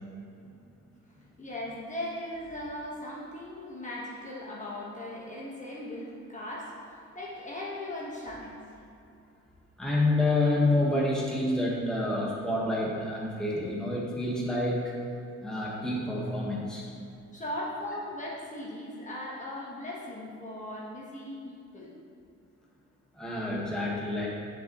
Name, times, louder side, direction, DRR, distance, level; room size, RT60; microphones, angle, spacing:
voice 1, 1.4-8.8 17.3-21.9, left 1 dB, 25° left, -6 dB, 1.4 m, -38 dB
voice 2, 9.8-14.8 15.4-16.9 23.2-24.3, left 2 dB, ahead, -5 dB, 1.5 m, -28 dB
7.3 x 6.8 x 3.1 m, 2.5 s
cardioid pair, 90°, 30 cm